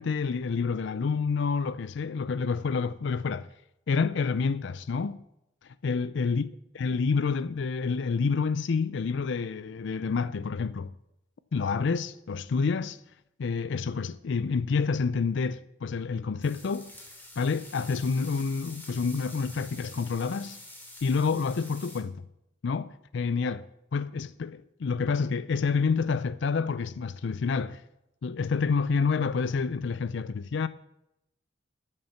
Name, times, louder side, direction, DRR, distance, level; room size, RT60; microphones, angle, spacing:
voice 1, 0.0-3.5 3.9-5.2 5.6-6.5 6.7-10.9 11.5-13.0 13.4-16.9 17.4-20.6 21.0-22.3 22.6-23.7 23.9-27.8 28.2-30.7, left 5 dB, 70° left, 0.4 m, -28 dB
sound 1, 16.4-22.0, left 1 dB, 10° left, 2.8 m, -47 dB
13.0 x 6.6 x 7.1 m
head